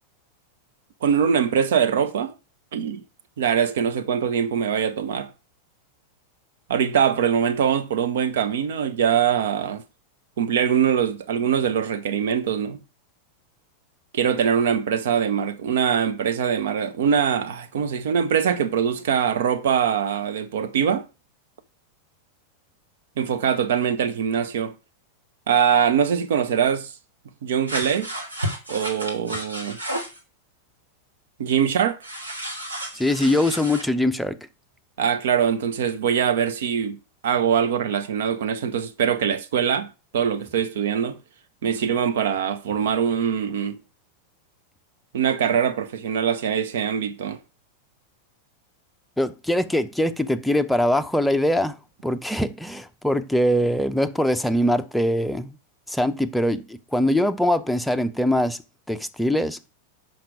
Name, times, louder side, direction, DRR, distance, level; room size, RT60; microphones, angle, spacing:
voice 1, 1.0-2.3 2.7-3.0 3.4-5.3 6.7-9.8 10.4-12.8 14.1-21.1 23.2-24.7 25.5-26.9 27.4-28.1 28.7-29.8 31.4-32.0 35.0-37.0 37.2-39.9 40.1-41.2 41.6-43.8 45.1-47.4, right 8 dB, 60° right, 0.6 m, -23 dB
sound 1, 27.7-30.2 32.0-33.9, right 1 dB, 80° right, 1.5 m, -32 dB
voice 2, 32.9-34.4 49.2-51.8 52.0-55.6 55.9-58.6 58.9-59.6, left 1 dB, ahead, 0.5 m, -22 dB
5.9 x 5.3 x 4.9 m
figure-of-eight pair, 90°, 0 cm